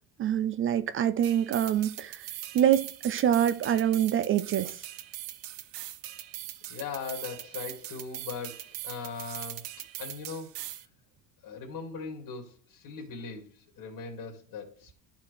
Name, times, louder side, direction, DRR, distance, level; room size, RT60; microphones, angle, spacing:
voice 1, 0.2-2.3 2.5-4.8, right 10 dB, 30° right, 0.4 m, -25 dB
sound 1, 1.2-10.9, right 14 dB, 80° right, 1.0 m, -41 dB
voice 2, 6.7-9.7 10.0-10.5 11.4-14.9, left 5 dB, 55° left, 2.5 m, -39 dB
13.0 x 4.5 x 3.4 m
cardioid pair, 150°, 41 cm